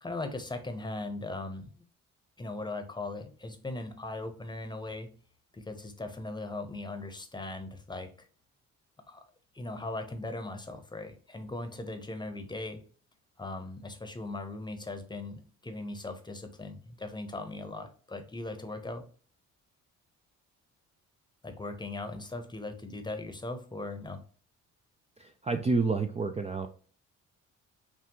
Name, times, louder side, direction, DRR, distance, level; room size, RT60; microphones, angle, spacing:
voice 1, 0.0-1.8 2.4-5.1 5.5-8.1 9.1-9.2 9.5-12.8 13.4-19.0 21.4-24.2, left 2 dB, 15° left, 7 dB, 0.8 m, -39 dB
voice 2, 25.2-26.7, right 4 dB, 20° right, 6 dB, 0.4 m, -29 dB
5.8 x 2.3 x 3.0 m, 0.43 s
cardioid pair, 90°, 30 cm